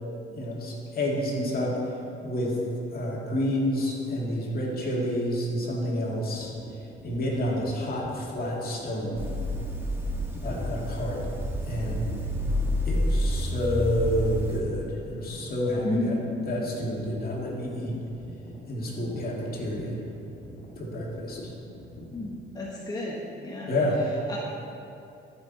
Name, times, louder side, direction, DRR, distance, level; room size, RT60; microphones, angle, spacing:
voice 1, 0.3-1.8 2.2-2.6 2.9-6.5 7.0-9.3 10.4-11.2 11.7-12.1 12.8-16.2 16.5-17.9 18.7-20.0 20.8-21.4 23.7-24.0, left 1 dB, 50° left, -3 dB, 2.2 m, -29 dB
sound 1, 6.3-22.3, left 1 dB, 75° left, 1.9 m, -45 dB
sound 2, 9.2-14.6, equal, 10° right, 1.4 m, -29 dB
voice 2, 15.8-16.4 22.1-23.8 24.3-24.4, left 1 dB, 20° left, -4 dB, 1.2 m, -32 dB
13.5 x 5.8 x 4.1 m, 2.6 s
cardioid pair, 90°, 20 cm